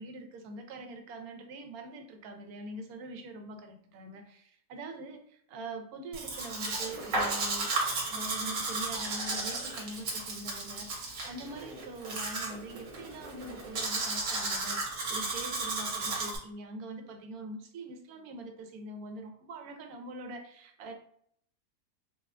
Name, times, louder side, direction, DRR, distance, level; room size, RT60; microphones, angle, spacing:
voice 1, 0.0-7.7 8.1-20.9, right 1 dB, 90° right, 5 dB, 1.1 m, -43 dB
Domestic sounds home sounds, 6.1-16.4, right 3 dB, 65° right, 1.2 m, -34 dB
3.9 x 2.1 x 2.4 m, 0.65 s
omnidirectional pair, 1.5 m